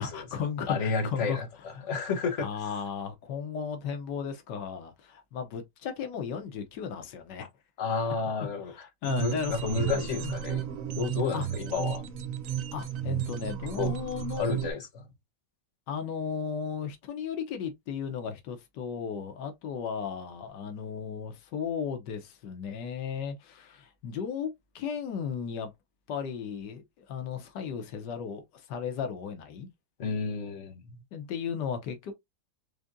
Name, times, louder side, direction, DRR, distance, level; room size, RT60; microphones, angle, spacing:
voice 1, 0.0-1.4 2.4-7.5 8.4-10.3 11.3-11.5 12.7-14.5 15.9-24.5 24.7-25.7 26.1-29.7 31.1-32.1, left 7 dB, 85° left, 1.5 m, -35 dB
voice 2, 0.7-2.5 7.8-8.7 9.2-10.6 10.9-12.0 13.8-14.0 14.4-15.0 30.0-30.8, left 4 dB, 55° left, 0.9 m, -31 dB
sound 1, 9.0-14.7, right 10 dB, 65° right, 0.9 m, -33 dB
4.9 x 2.7 x 2.5 m
omnidirectional pair, 1.8 m